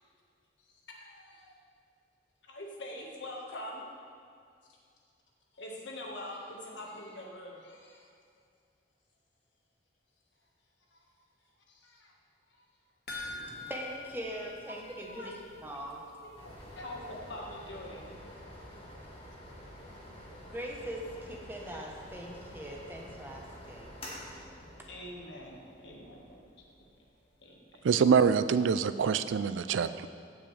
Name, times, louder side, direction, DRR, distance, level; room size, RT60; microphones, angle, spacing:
voice 1, 0.6-1.5 2.4-3.9 5.5-8.1 10.9-11.1 11.7-12.1 12.5-12.7 14.8-18.2 22.7-22.8 24.9-26.4 27.4-27.8, left 1 dB, 80° left, -1 dB, 1.6 m, -45 dB
sound 1, 13.1-15.6 15.9-16.0 16.4-16.5, left 3 dB, 55° left, 1.3 m, -44 dB
voice 2, 13.2-16.0 20.5-23.9, right 1 dB, 10° right, -1 dB, 0.9 m, -41 dB
sound 2, 16.4-28.8, equal, 30° left, 1.7 m, -49 dB
voice 3, 27.8-30.1, right 6 dB, 90° right, 12 dB, 0.4 m, -25 dB
15.5 x 6.1 x 3.3 m, 2.3 s
head